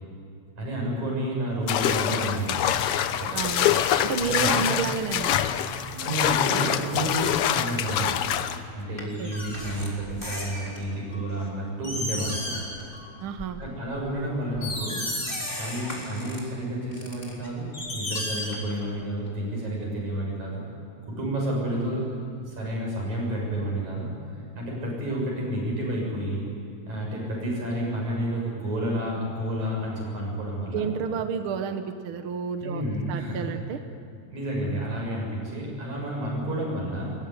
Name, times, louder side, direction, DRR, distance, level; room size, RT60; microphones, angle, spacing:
voice 1, 0.6-2.8 3.2-3.5 4.3-4.6 6.0-12.6 13.6-15.0 15.6-20.6 21.1-22.1 22.4-24.1 24.6-26.4 26.9-30.9 32.6-33.5 34.3-37.2, right 1 dB, 75° right, -2 dB, 8.6 m, -30 dB
sound 1, 1.7-8.6, left 10 dB, 70° left, 1.5 m, -25 dB
sound 2, 1.9-15.8, left 1 dB, 40° left, 5.1 m, -46 dB
voice 2, 3.3-3.8 4.0-5.4 9.2-9.4 13.2-13.6 30.7-32.8 33.1-33.8, right 6 dB, 55° right, 8 dB, 1.6 m, -30 dB
sound 3, 9.0-10.9 11.5-11.6 11.8-12.9 13.2-13.5 14.1-14.2 14.5-16.4 16.9-19.0 19.3-19.4, left 1 dB, 15° left, 4.1 m, -34 dB
23.0 x 22.5 x 9.8 m, 2.4 s
omnidirectional pair, 3.3 m